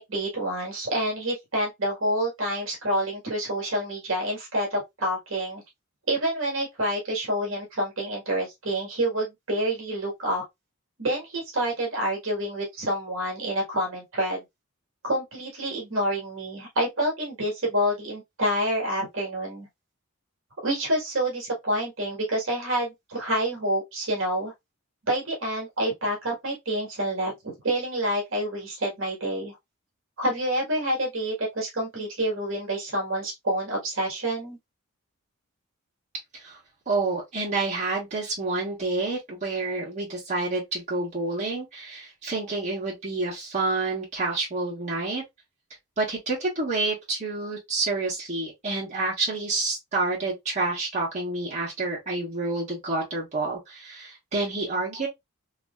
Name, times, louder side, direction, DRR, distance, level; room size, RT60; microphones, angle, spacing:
voice 1, 0.1-5.6 6.1-10.4 11.0-14.4 15.0-19.7 20.6-24.5 25.1-29.5 30.2-34.6, right 1 dB, 60° right, 1.4 m, -28 dB
voice 2, 36.9-45.2 46.0-55.1, right 3 dB, 30° right, 1.4 m, -28 dB
3.0 x 2.9 x 2.3 m
head